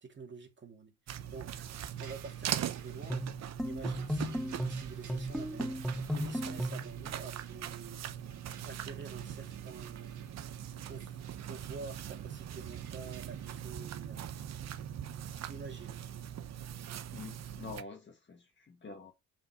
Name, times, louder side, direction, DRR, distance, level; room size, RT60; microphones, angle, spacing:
voice 1, 0.0-1.7 2.0-3.3 3.6-8.0 8.7-10.2 10.8-11.2 11.4-14.3 15.5-16.0, right 4 dB, 40° right, 2.4 m, -48 dB
sound 1, 1.1-17.8, right 10 dB, 60° right, 0.9 m, -41 dB
sound 2, 2.0-13.5, right 8 dB, 75° right, 2.1 m, -58 dB
sound 3, 3.1-6.9, right 1 dB, ahead, 0.6 m, -35 dB
voice 2, 17.1-19.1, left 4 dB, 40° left, 1.8 m, -47 dB
5.4 x 5.3 x 4.7 m
cardioid pair, 90°, 30 cm